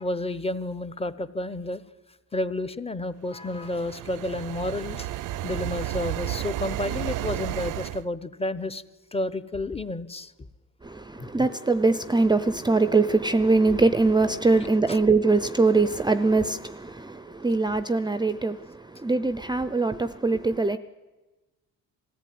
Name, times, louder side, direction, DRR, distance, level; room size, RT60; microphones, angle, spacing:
voice 1, 0.0-1.8 2.3-5.1 5.4-8.8 9.1-10.3 11.2-11.5 14.9-15.0, left 1 dB, 20° left, 0.9 m, -31 dB
sound 1, 3.3-8.0, right 14 dB, 70° right, 0.6 m, -32 dB
voice 2, 10.8-20.8, right 3 dB, 15° right, 0.6 m, -22 dB
20.0 x 14.5 x 9.5 m
cardioid pair, 105°, 32 cm